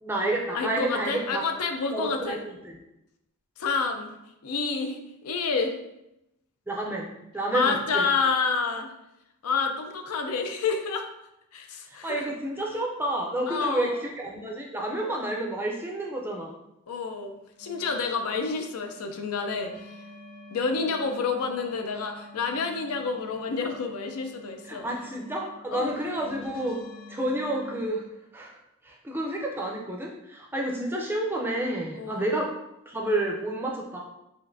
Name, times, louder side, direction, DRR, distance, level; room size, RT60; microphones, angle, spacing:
voice 1, 0.0-1.4 1.9-2.8 6.7-8.1 11.9-16.6 24.7-26.8 27.1-28.0 28.3-28.6 28.8-32.5 32.9-34.0, right 1 dB, 10° right, -1 dB, 0.4 m, -30 dB
voice 2, 0.5-2.4 3.6-4.1 4.4-5.8 7.5-8.9 9.4-11.1 11.5-12.3 13.5-14.0 16.9-17.3 17.6-19.9 20.5-24.9 25.7-26.1 31.9-32.3, left 4 dB, 85° left, 5 dB, 0.5 m, -29 dB
sound 1, 17.6-27.9, left 2 dB, 60° left, 1.3 m, -48 dB
5.1 x 2.5 x 2.6 m, 0.86 s
head